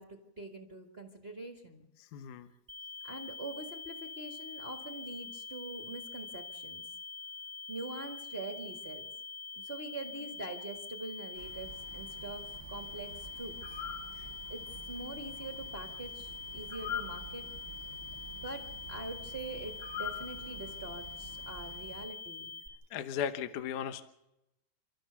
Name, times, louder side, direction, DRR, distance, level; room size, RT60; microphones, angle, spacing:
voice 1, 0.0-1.9 3.0-6.8 7.7-9.1 9.5-13.8 14.5-14.6 14.9-17.4 18.3-18.6 18.9-22.5, right 2 dB, 40° right, 3 dB, 0.8 m, -44 dB
voice 2, 2.0-2.5 14.2-14.3 22.9-24.0, left 8 dB, 70° left, 9 dB, 2.1 m, -36 dB
sound 1, 2.7-22.7, left 4 dB, 20° right, 1.8 m, -45 dB
sound 2, 11.3-22.0, left 4 dB, 25° left, 2.4 m, -45 dB
30.0 x 14.0 x 6.9 m, 0.89 s
omnidirectional pair, 4.4 m